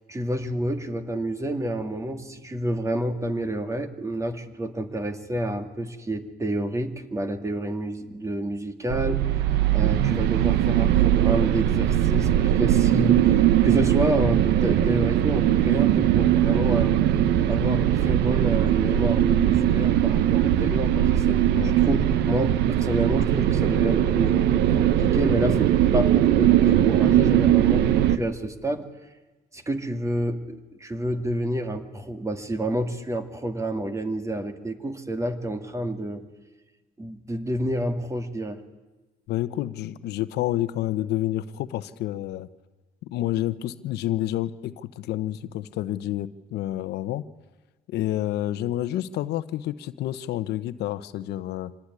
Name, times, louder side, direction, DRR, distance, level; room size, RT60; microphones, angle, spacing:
voice 1, 0.1-9.2 9.7-17.0 17.5-28.9 29.5-36.2 37.0-38.6, right 1 dB, 15° right, 8 dB, 2.3 m, -29 dB
sound 1, 8.9-28.2, right 11 dB, 85° right, 1.1 m, -20 dB
voice 2, 39.3-42.5 43.0-47.2 47.9-51.7, left 13 dB, 80° left, 13 dB, 1.0 m, -29 dB
25.0 x 18.5 x 9.8 m, 1.2 s
cardioid pair, 110°, 17 cm